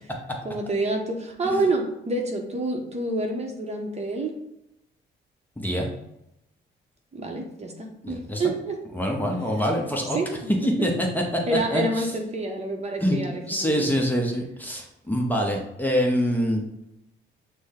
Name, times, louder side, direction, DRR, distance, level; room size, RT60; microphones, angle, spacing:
voice 1, 0.4-4.3 7.1-8.8 10.1-10.9 11.5-13.9, right 2 dB, 35° right, 2 dB, 0.8 m, -28 dB
voice 2, 5.6-5.9 8.0-8.4 8.9-10.2 10.6-12.1 13.0-16.6, equal, 10° left, 0 dB, 0.8 m, -25 dB
6.1 x 2.1 x 3.6 m, 0.85 s
cardioid pair, 90°, 20 cm